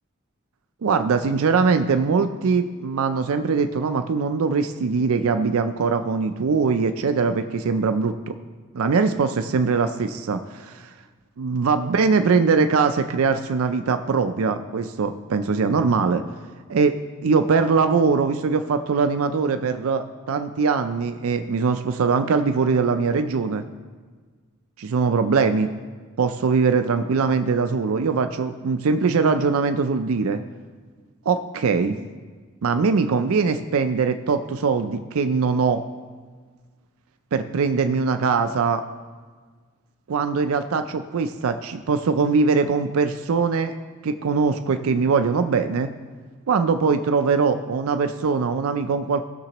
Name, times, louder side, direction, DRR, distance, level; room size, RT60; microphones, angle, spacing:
voice 1, 0.8-8.4 8.7-10.9 11.4-16.2 16.7-16.9 17.2-23.6 24.8-25.7 26.2-30.4 31.3-32.0 32.6-35.8 37.3-38.8 40.1-43.7 44.0-45.9 46.5-49.3, right 5 dB, 80° right, 8 dB, 0.4 m, -22 dB
16.0 x 6.7 x 2.9 m, 1.5 s
head